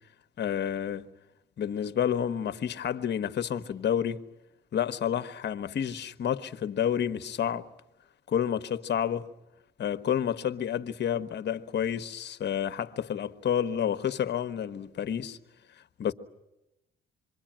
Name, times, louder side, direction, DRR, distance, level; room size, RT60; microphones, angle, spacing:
voice 1, 0.4-1.0 1.6-4.2 4.7-7.7 8.3-9.3 9.8-15.4 15.8-16.1, left 9 dB, 60° left, 1.3 m, -30 dB
27.0 x 23.5 x 9.0 m
cardioid pair, 90°, 20 cm